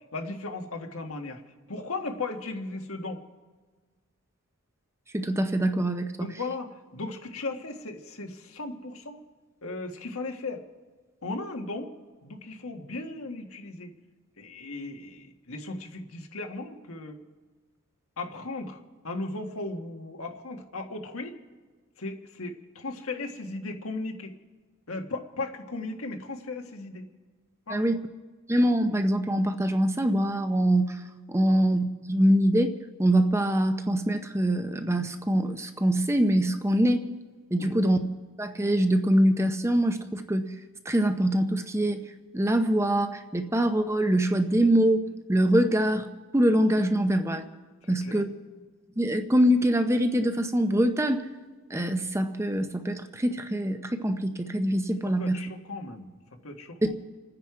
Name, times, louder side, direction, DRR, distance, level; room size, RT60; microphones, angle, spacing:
voice 1, 0.1-1.4 1.7-3.2 6.2-9.2 9.6-10.6 11.2-11.9 12.2-13.9 14.4-17.2 18.2-21.3 22.0-24.3 24.9-27.0 27.7-27.8 31.4-31.6 37.6-37.7 47.8-48.2 55.2-56.2 56.4-56.8, left 2 dB, 75° left, 4 dB, 1.5 m, -36 dB
voice 2, 5.1-6.3 27.7-28.0 28.5-31.0 31.3-32.7 33.0-37.1 37.5-38.0 38.4-40.5 40.8-45.0 45.3-47.5 47.9-48.3 49.0-51.3 51.7-55.4, right 1 dB, 15° right, 7 dB, 0.7 m, -24 dB
29.0 x 9.8 x 4.8 m, 1.4 s
head